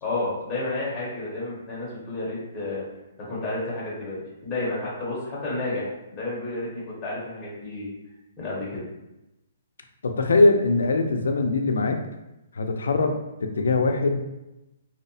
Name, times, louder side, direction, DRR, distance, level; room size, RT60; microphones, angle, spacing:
voice 1, 0.0-2.8 3.2-7.9 8.4-8.9, left 2 dB, 15° left, -7 dB, 0.6 m, -31 dB
voice 2, 10.0-12.0 12.6-13.2 13.4-14.2, left 3 dB, 90° left, 5 dB, 0.3 m, -21 dB
2.7 x 2.0 x 2.6 m, 0.95 s
hypercardioid pair, 180°, 0 cm